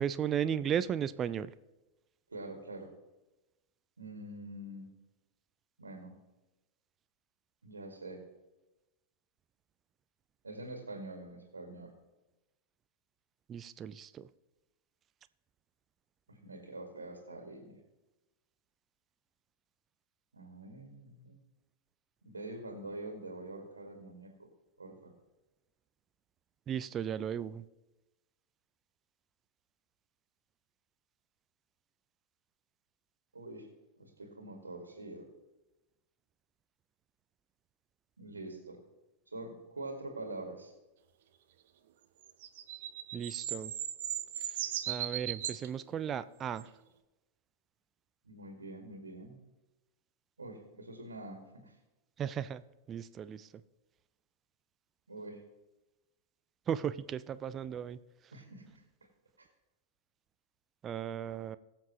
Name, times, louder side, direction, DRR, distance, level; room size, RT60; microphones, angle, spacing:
voice 1, 0.0-1.5 13.5-14.3 26.7-27.6 43.1-43.7 44.9-46.7 52.2-52.6 52.9-53.5 56.7-58.0 60.8-61.6, right 8 dB, 25° right, 15 dB, 0.4 m, -35 dB
voice 2, 2.3-2.9 4.0-4.9 5.8-6.1 7.6-8.2 10.4-11.9 16.3-17.8 20.3-21.4 22.2-24.5 24.8-25.1 33.3-33.7 34.0-35.3 38.2-38.8 39.3-40.7 48.2-49.4 50.4-51.8 55.1-55.4 58.3-58.8, right 2 dB, 75° right, 3 dB, 1.9 m, -45 dB
sound 1, 42.3-45.7 46.6-46.7, right 11 dB, 55° right, 0.8 m, -37 dB
21.0 x 7.0 x 3.0 m, 1.0 s
figure-of-eight pair, 90°, 0 cm